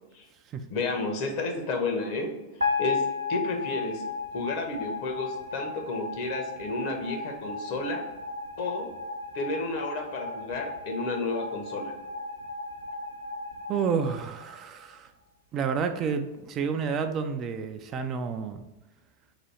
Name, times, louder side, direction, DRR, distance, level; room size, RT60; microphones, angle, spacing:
voice 1, 0.7-2.4 2.8-3.0 3.3-4.0 4.3-8.1 8.6-8.9 9.3-11.9, left 3 dB, 45° left, 2 dB, 0.9 m, -31 dB
sound 1, 2.6-14.9, left 4 dB, 80° right, 0.6 m, -35 dB
voice 2, 13.7-15.1 15.5-18.6, right 6 dB, 30° right, 6 dB, 0.4 m, -30 dB
4.0 x 2.6 x 4.3 m, 1.0 s
figure-of-eight pair, 90°, 0 cm